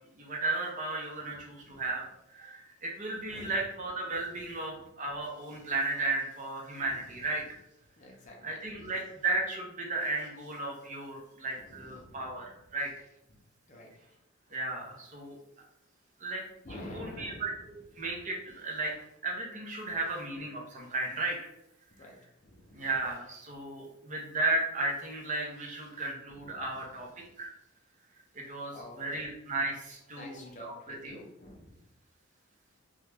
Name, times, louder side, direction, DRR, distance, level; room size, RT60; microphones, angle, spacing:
voice 1, 0.2-2.0 2.3-7.6 8.4-12.9 14.5-15.4 16.2-16.4 16.7-18.9 19.2-21.4 22.7-27.1 27.4-27.5 28.3-31.2, right 2 dB, 35° right, -1 dB, 0.7 m, -34 dB
voice 2, 1.3-1.8 3.2-3.7 4.4-5.1 6.8-7.6 8.0-9.0 11.6-12.7 13.3-13.4 13.7-13.9 16.6-18.1 19.8-20.1 22.0-22.2 22.4-23.0 26.3-27.0 28.7-29.3 30.1-31.8, left 1 dB, 35° left, -1 dB, 0.6 m, -50 dB
3.0 x 2.3 x 3.3 m, 0.84 s
head